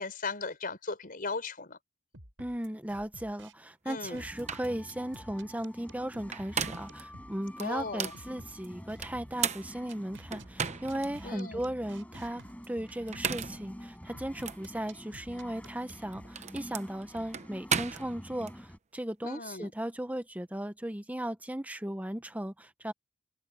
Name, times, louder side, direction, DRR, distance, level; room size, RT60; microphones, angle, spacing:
voice 1, 0.0-1.8 3.9-4.2 7.6-8.1 11.2-11.7 19.2-19.7, left 4 dB, 50° left, 4.8 m, -37 dB
sound 1, 2.1-3.5 3.9-7.3 7.6-7.7 8.1-9.5 9.9-13.5 14.1-16.3, right 2 dB, 80° right, 6.7 m, -52 dB
voice 2, 2.4-22.9, right 1 dB, 10° right, 1.0 m, -37 dB
sound 2, 4.1-4.2 4.5-4.7 6.1-7.0 7.6-8.2 9.0-11.1 11.6-11.7 13.0-13.7 14.4-14.6 15.8-18.5, right 6 dB, 35° right, 0.9 m, -35 dB
sound 3, 4.2-18.8, equal, 10° left, 6.7 m, -48 dB
open air
head